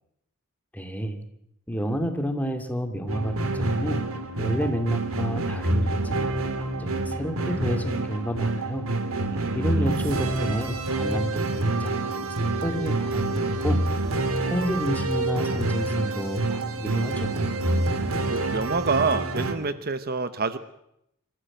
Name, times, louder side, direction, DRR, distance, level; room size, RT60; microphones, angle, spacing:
voice 1, 0.7-1.2 1.7-4.0 4.4-6.3 6.6-8.9 9.5-12.4 12.6-13.8 14.4-17.5, equal, 5° left, 6 dB, 2.4 m, -30 dB
sound 1, 3.1-19.5, right 2 dB, 70° right, 2.9 m, -27 dB
voice 2, 9.3-10.1 18.3-20.6, right 4 dB, 45° right, 12 dB, 1.0 m, -27 dB
26.0 x 15.0 x 8.9 m, 0.79 s
head